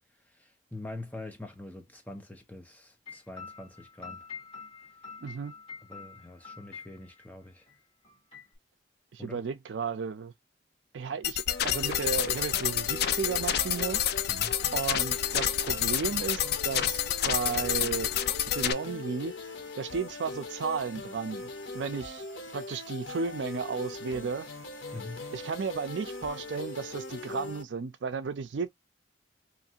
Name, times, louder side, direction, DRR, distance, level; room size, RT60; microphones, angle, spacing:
voice 1, 0.3-4.3 5.9-7.7 9.2-9.4 14.3-14.5 24.9-25.2, left 2 dB, 10° left, 0.6 m, -44 dB
sound 1, 3.1-7.3 7.7-7.8 8.0-8.6, left 5 dB, 30° left, 2.0 m, -46 dB
voice 2, 5.2-5.6 9.1-10.3 10.9-14.0 14.7-18.1 18.5-19.3 19.8-22.2 22.5-24.5 25.3-28.7, right 5 dB, 70° right, 0.4 m, -34 dB
sound 2, 11.2-18.7, left 10 dB, 55° left, 0.3 m, -29 dB
sound 3, 11.5-27.6, left 2 dB, 80° left, 0.8 m, -41 dB
3.0 x 2.5 x 2.7 m
head